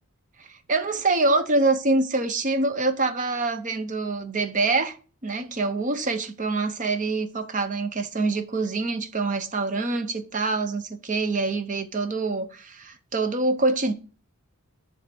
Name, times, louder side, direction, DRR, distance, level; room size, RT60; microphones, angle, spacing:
voice 1, 0.7-5.0 5.2-13.9, right 3 dB, 35° right, 0.7 m, -25 dB
7.4 x 3.4 x 5.9 m
head